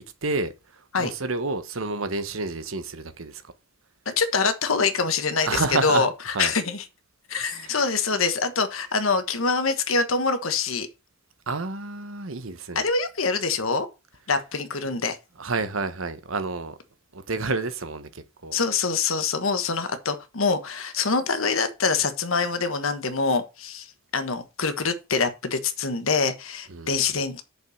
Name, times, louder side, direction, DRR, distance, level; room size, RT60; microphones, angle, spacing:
voice 1, 0.2-3.4 5.4-6.1 6.3-6.5 7.4-7.8 11.5-12.9 15.4-16.8 17.1-18.6 26.7-27.0, right 3 dB, 80° right, 1.2 m, -29 dB
voice 2, 4.0-6.1 6.4-6.8 7.3-10.9 12.7-13.9 14.3-15.2 18.5-23.9 24.1-27.4, left 4 dB, 90° left, 1.3 m, -25 dB
6.4 x 5.6 x 6.4 m
head